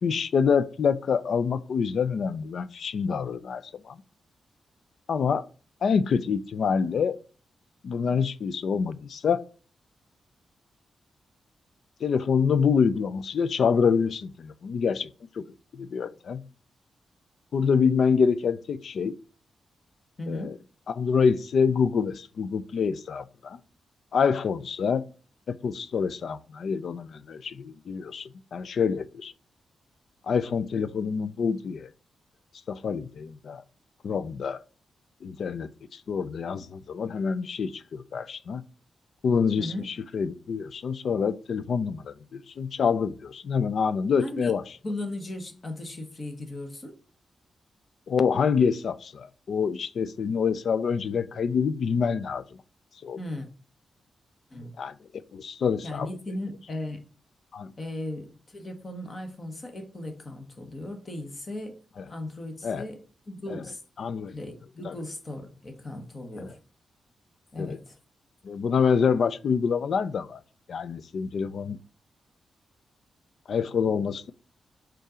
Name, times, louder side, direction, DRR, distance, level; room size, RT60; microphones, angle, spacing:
voice 1, 0.0-4.0 5.1-5.5 5.8-7.2 7.8-9.4 12.0-15.1 15.4-15.5 15.7-16.5 17.5-19.1 20.3-20.5 20.9-23.6 24.1-25.0 25.5-29.3 30.3-31.9 32.7-33.6 34.0-34.6 35.2-38.6 39.2-44.6 48.1-52.4 53.0-53.2 54.8-54.9 55.3-56.1 57.5-57.7 62.0-62.1 62.6-62.8 63.5-63.6 64.0-64.3 64.8-64.9 66.4-66.5 67.6-67.8 68.4-70.4 70.7-71.8 73.5-74.3, left 6 dB, 55° left, 0.4 m, -26 dB
voice 2, 20.2-20.6 39.6-39.9 44.2-44.5 44.8-46.9 53.2-53.5 54.5-54.8 55.8-57.1 57.8-61.8 62.1-63.8 64.3-66.6 67.5-67.9, left 1 dB, 25° left, 1.1 m, -37 dB
5.4 x 3.8 x 5.0 m
wide cardioid pair, 175°, 0 cm